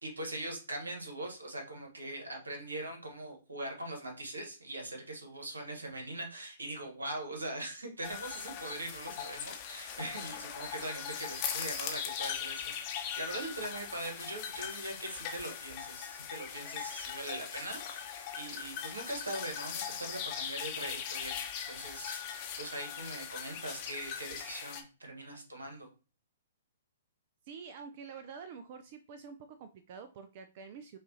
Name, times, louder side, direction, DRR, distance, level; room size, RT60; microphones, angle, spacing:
voice 1, 0.0-21.4 21.6-25.9, right 1 dB, 80° right, 3 dB, 1.2 m, -41 dB
sound 1, 8.0-24.8, left 8 dB, 40° left, 0.7 m, -40 dB
voice 2, 27.4-31.0, right 6 dB, 45° right, 10 dB, 0.4 m, -47 dB
5.6 x 2.4 x 2.7 m, 0.35 s
figure-of-eight pair, 115°, 0 cm